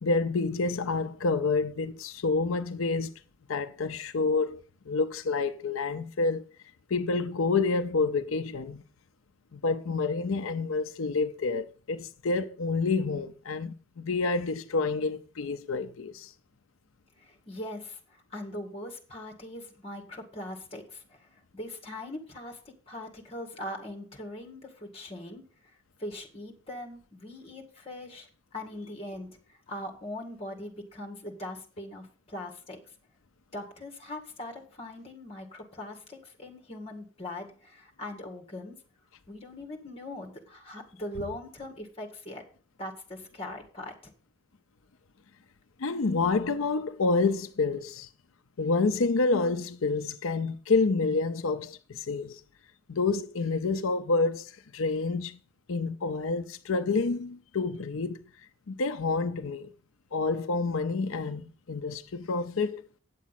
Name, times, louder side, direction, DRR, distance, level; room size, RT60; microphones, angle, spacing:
voice 1, 0.0-3.1 3.5-4.6 4.9-6.4 6.9-8.8 9.5-16.3 45.8-48.1 48.6-52.4 52.9-55.4 55.7-58.2 58.7-59.7 60.1-62.8, left 3 dB, 90° left, 0.6 m, -28 dB
voice 2, 17.2-32.9 33.5-38.8 39.3-42.4 42.8-44.1, left 1 dB, 30° left, 2.0 m, -41 dB
9.2 x 7.3 x 5.8 m
head